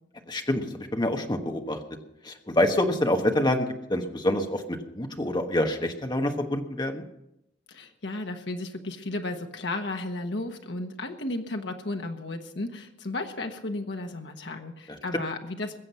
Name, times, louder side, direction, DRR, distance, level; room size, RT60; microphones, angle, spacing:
voice 1, 0.3-1.8 2.2-7.0 14.9-15.0, left 1 dB, 25° left, 4 dB, 1.3 m, -26 dB
voice 2, 7.7-15.8, left 2 dB, 70° left, 4 dB, 1.3 m, -34 dB
21.5 x 7.7 x 5.6 m, 0.84 s
head